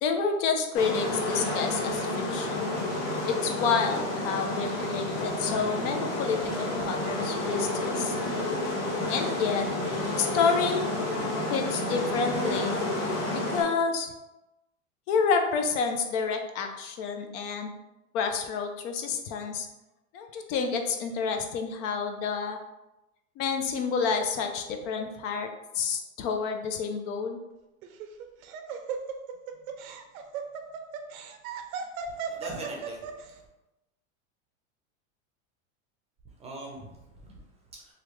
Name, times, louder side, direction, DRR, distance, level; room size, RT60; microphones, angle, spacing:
voice 1, 0.0-2.7 3.3-8.3 9.1-9.6 10.1-10.8 11.5-12.7 13.5-14.1 15.1-17.7 18.1-19.7 20.1-22.6 23.4-25.5 25.7-27.4, left 5 dB, 60° left, 5 dB, 0.6 m, -29 dB
sound 1, 0.7-13.6, left 1 dB, 75° left, 1.4 m, -30 dB
Laughter, 27.8-33.3, right 6 dB, 90° right, 0.6 m, -36 dB
voice 2, 32.1-33.4 36.2-37.9, right 2 dB, 15° right, -1 dB, 0.5 m, -43 dB
3.3 x 2.4 x 3.0 m, 0.98 s
supercardioid pair, 130°, 42 cm